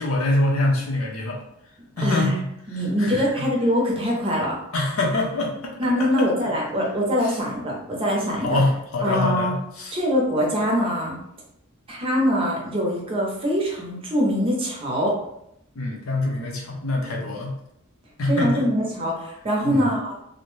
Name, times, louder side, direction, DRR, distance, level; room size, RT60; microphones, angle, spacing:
voice 1, 0.0-1.4 2.0-2.5 3.0-3.5 4.7-5.7 7.2-7.4 8.4-10.0 15.8-17.5 18.2-18.7 19.6-19.9, left 2 dB, 70° left, -1 dB, 0.6 m, -24 dB
voice 2, 2.0-2.4 2.7-4.6 5.8-8.6 9.0-9.5 9.9-11.2 11.9-15.2 17.3-17.4 18.3-20.2, equal, 25° right, -2 dB, 0.6 m, -23 dB
2.5 x 2.1 x 3.1 m, 0.77 s
head